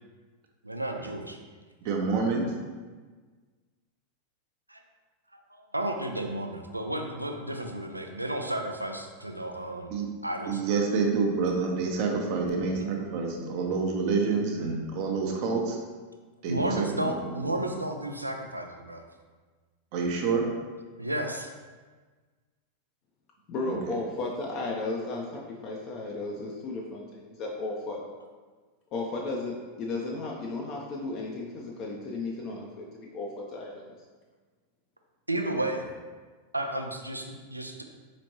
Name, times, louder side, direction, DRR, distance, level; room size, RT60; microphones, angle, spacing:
voice 1, 0.6-1.4 4.7-4.8 5.3-5.4 5.7-10.0 10.2-10.6 12.7-12.9 16.5-19.0 21.0-21.5 35.3-35.9 36.5-37.8, right 1 dB, 85° right, 4 dB, 0.3 m, -32 dB
voice 2, 1.8-2.5 9.9-10.1 10.5-15.8 16.4-17.1 17.4-17.5 19.9-20.5 23.6-23.9, right 4 dB, 45° right, 1 dB, 0.6 m, -28 dB
voice 3, 23.5-28.0 28.9-33.9, left 3 dB, 35° left, -2 dB, 0.5 m, -34 dB
4.2 x 3.0 x 2.8 m, 1.4 s
figure-of-eight pair, 90°, 0 cm